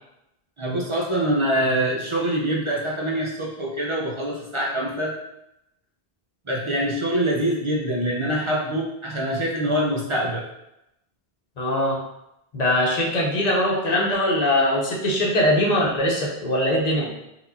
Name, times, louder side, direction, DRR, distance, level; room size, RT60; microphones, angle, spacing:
voice 1, 0.6-5.1 6.5-10.4, right 1 dB, 30° right, -3 dB, 0.8 m, -24 dB
voice 2, 11.6-12.0 12.5-17.1, left 1 dB, 40° left, -3 dB, 1.0 m, -21 dB
4.6 x 3.7 x 2.7 m, 0.86 s
omnidirectional pair, 1.1 m